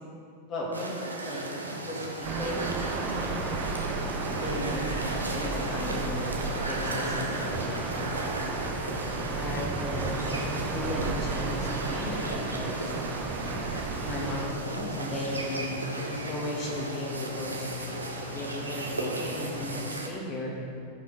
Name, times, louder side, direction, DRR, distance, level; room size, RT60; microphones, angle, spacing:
voice 1, 0.5-1.5 1.9-3.4 4.4-7.9 9.3-12.2 12.5-12.9 14.0-20.7, left 1 dB, 35° left, -3 dB, 2.3 m, -36 dB
sound 1, 0.7-20.1, right 2 dB, 80° right, 0.9 m, -36 dB
sound 2, 2.2-19.9, left 5 dB, 5° left, 1.1 m, -43 dB
sound 3, 2.2-14.5, right 4 dB, 30° right, 1.0 m, -33 dB
14.0 x 5.5 x 3.9 m, 2.7 s
figure-of-eight pair, 90°, 0 cm